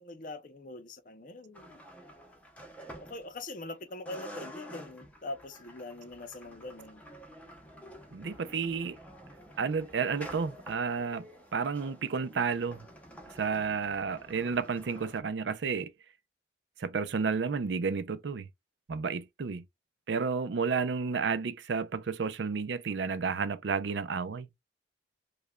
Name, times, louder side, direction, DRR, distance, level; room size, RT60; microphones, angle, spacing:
voice 1, 0.0-1.8 2.9-7.0, left 2 dB, 45° left, 0.6 m, -43 dB
sound 1, 1.5-3.7 4.1-15.2, equal, 10° left, 0.7 m, -49 dB
voice 2, 8.1-9.0 9.6-11.2 11.5-12.9 13.4-15.9 16.8-18.5 18.9-19.6 20.1-24.5, right 5 dB, 80° right, 0.5 m, -31 dB
5.0 x 2.2 x 2.2 m
head